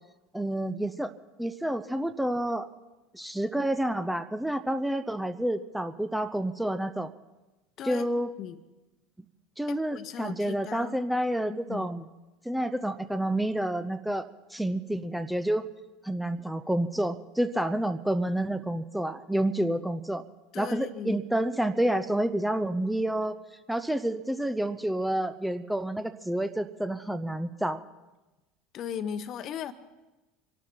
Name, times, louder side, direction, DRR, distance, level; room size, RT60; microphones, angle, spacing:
voice 1, 0.3-1.1 1.4-2.7 3.1-7.1 7.8-8.3 9.6-12.0 12.4-15.7 16.0-20.2 20.6-23.4 23.7-27.8, right 1 dB, 5° right, 10 dB, 0.7 m, -29 dB
voice 2, 9.7-11.0 11.5-12.0 20.5-21.2 28.7-29.7, left 8 dB, 40° left, 13 dB, 1.0 m, -37 dB
25.5 x 12.0 x 4.4 m, 1.1 s
figure-of-eight pair, 75°, 0 cm